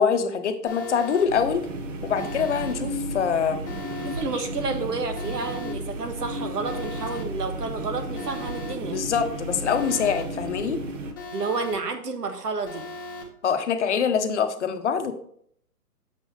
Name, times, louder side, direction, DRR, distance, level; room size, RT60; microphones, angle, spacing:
voice 1, 0.0-1.6 2.0-3.6 8.9-10.8 13.4-15.1, left 7 dB, 50° left, 7 dB, 0.9 m, -24 dB
Alarm, 0.7-1.2 2.1-2.7 3.6-4.2 5.1-5.7 6.6-7.2 8.1-8.7 9.6-10.2 11.1-11.7 12.6-13.2, left 3 dB, 15° left, 0.5 m, -38 dB
sound 1, 1.3-11.1, right 1 dB, 55° right, 1.3 m, -33 dB
voice 2, 4.0-9.0 11.3-12.8, right 4 dB, 85° right, 7 dB, 1.5 m, -30 dB
8.2 x 6.0 x 3.2 m, 0.65 s
hypercardioid pair, 150°, 47 cm